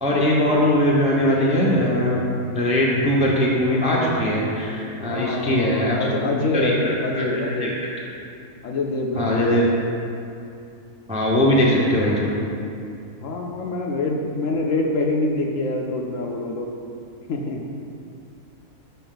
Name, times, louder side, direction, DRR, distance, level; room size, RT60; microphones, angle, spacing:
voice 1, 0.0-6.0 6.5-7.7 9.1-9.7 11.1-12.4, left 1 dB, 10° right, -4 dB, 0.4 m, -20 dB
voice 2, 5.0-7.8 8.6-9.6 13.2-16.7 17.3-17.6, left 2 dB, 65° left, 1 dB, 0.9 m, -25 dB
6.8 x 5.5 x 3.8 m, 2.6 s
omnidirectional pair, 1.6 m